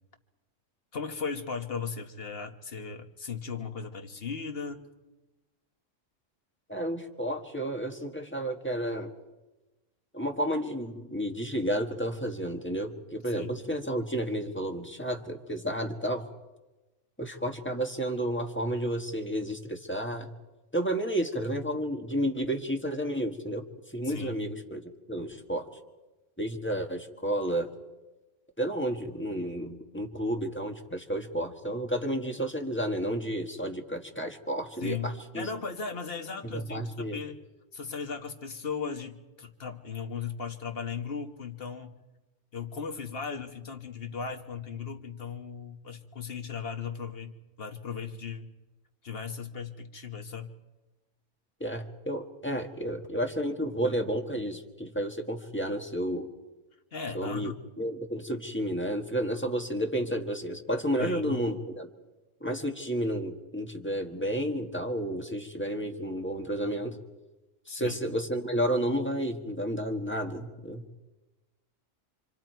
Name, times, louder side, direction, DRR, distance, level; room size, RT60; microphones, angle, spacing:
voice 1, 0.9-4.9 13.3-13.5 24.0-24.4 34.8-37.3 37.7-41.9 42.5-48.5 49.0-50.5 56.9-57.6 61.0-61.4 67.7-68.0, left 5 dB, 50° left, 5 dB, 1.6 m, -37 dB
voice 2, 6.7-9.1 10.1-16.3 17.2-20.3 20.7-23.6 23.9-25.7 26.4-27.7 28.6-35.5 36.4-37.2 51.6-56.3 57.1-61.9 62.4-67.0 67.7-70.8, equal, 10° left, 3 dB, 1.6 m, -31 dB
28.0 x 25.5 x 4.6 m, 1.1 s
omnidirectional pair, 1.3 m